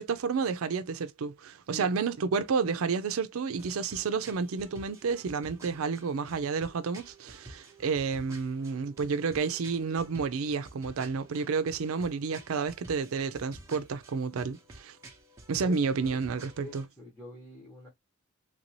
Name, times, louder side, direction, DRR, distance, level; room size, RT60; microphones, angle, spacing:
voice 1, 0.0-15.0 15.5-16.8, right 5 dB, 85° right, 0.4 m, -30 dB
sound 1, 3.6-16.9, right 2 dB, 15° right, 0.8 m, -51 dB
voice 2, 15.6-16.2 16.6-17.9, left 1 dB, 10° left, 1.2 m, -47 dB
3.3 x 2.6 x 2.9 m
head